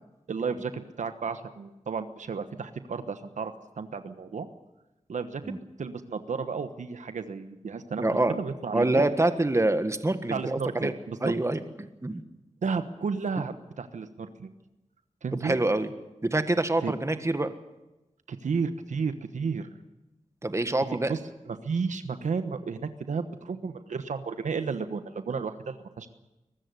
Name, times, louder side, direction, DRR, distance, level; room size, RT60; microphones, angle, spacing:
voice 1, 0.3-4.5 5.1-5.4 5.8-8.0 8.3-9.1 10.3-11.3 12.6-14.5 15.2-15.6 16.8-16.9 18.3-19.7 21.1-21.2 21.5-26.1, right 5 dB, 85° right, 10 dB, 1.2 m, -32 dB
voice 2, 8.0-8.3 8.7-10.9 11.2-12.2 15.4-15.9 16.2-17.5 20.4-21.1, right 2 dB, 25° right, 9 dB, 1.7 m, -26 dB
22.5 x 13.5 x 9.6 m, 0.99 s
cardioid pair, 55°, 12 cm